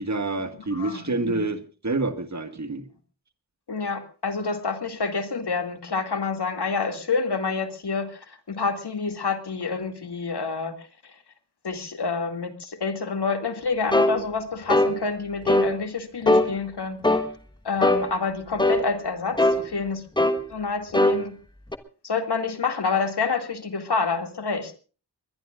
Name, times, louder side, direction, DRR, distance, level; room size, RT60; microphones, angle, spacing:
voice 1, 0.0-2.9, right 3 dB, 40° right, 9 dB, 1.7 m, -28 dB
voice 2, 0.7-1.5 3.7-10.9 11.6-17.0 17.6-20.0 20.5-21.4 22.0-24.8, left 4 dB, 70° left, 6 dB, 2.4 m, -28 dB
sound 1, 13.9-14.2 14.7-14.9 15.5-15.7 16.3-16.5 17.0-17.3 17.8-18.0 18.6-18.8 19.4-19.6 20.2-20.4 20.9-21.2 21.7-21.8, left 1 dB, 10° left, 1.3 m, -19 dB
22.0 x 21.5 x 2.5 m, 0.37 s
wide cardioid pair, 95°, 41 cm